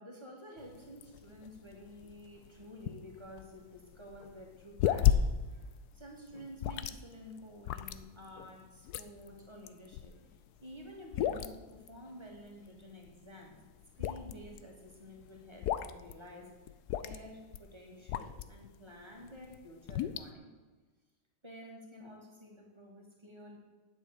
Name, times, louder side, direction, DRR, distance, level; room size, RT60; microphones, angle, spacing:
voice 1, 0.0-5.7 5.9-13.6 14.0-16.6 16.9-20.6 21.4-23.6, equal, 15° right, 0 dB, 2.4 m, -51 dB
sound 1, 0.6-18.7 19.1-20.3, left 10 dB, 75° left, 1.1 m, -35 dB
9.4 x 8.2 x 8.4 m, 1.3 s
omnidirectional pair, 1.8 m